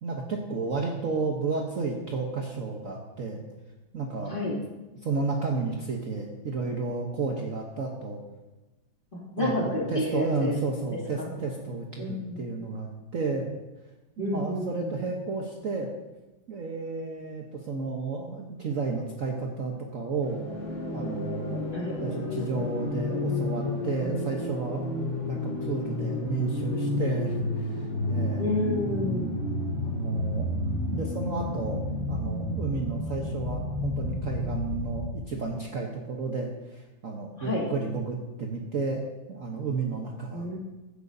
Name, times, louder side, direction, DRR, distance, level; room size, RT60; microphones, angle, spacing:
voice 1, 0.0-3.4 3.9-4.3 5.0-8.2 9.4-13.4 14.2-15.9 16.5-20.4 20.9-21.6 22.0-24.8 25.3-28.4 29.0-29.3 29.8-30.5 30.9-31.8 32.1-39.0 39.3-40.5, right 4 dB, 50° right, 0 dB, 1.2 m, -32 dB
voice 2, 9.1-10.6 11.2-11.3 12.0-12.4 14.2-14.9 21.7-22.0 28.4-29.4 37.4-37.7 40.3-40.6, left 1 dB, 25° left, -5 dB, 2.8 m, -30 dB
sound 1, 20.2-35.2, left 2 dB, 85° left, 2.8 m, -31 dB
16.0 x 9.9 x 2.7 m, 1.1 s
omnidirectional pair, 2.1 m